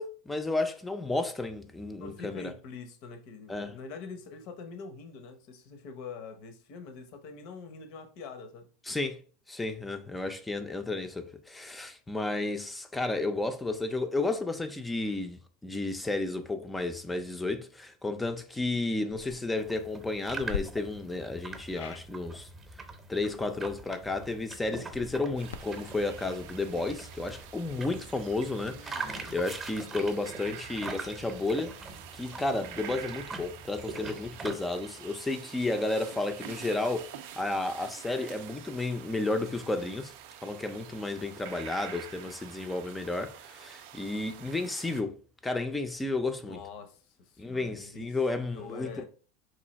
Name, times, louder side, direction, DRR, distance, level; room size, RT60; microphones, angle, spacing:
voice 1, 0.0-2.5 3.5-3.8 8.9-9.2 9.5-22.5 23.1-31.7 32.1-40.1 40.4-45.2 45.4-46.6 47.4-49.0, left 2 dB, 10° left, 0.4 m, -32 dB
voice 2, 2.0-8.7 28.6-29.3 46.4-49.0, left 5 dB, 60° left, 0.7 m, -45 dB
sound 1, 19.1-19.4 20.4-20.6 21.7-22.0 24.8-27.6, left 7 dB, 90° left, 0.3 m, -42 dB
sound 2, 19.6-34.6, right 3 dB, 20° right, 0.7 m, -43 dB
sound 3, 25.4-45.0, right 10 dB, 70° right, 0.4 m, -47 dB
3.1 x 2.6 x 4.0 m
supercardioid pair, 125°, 0 cm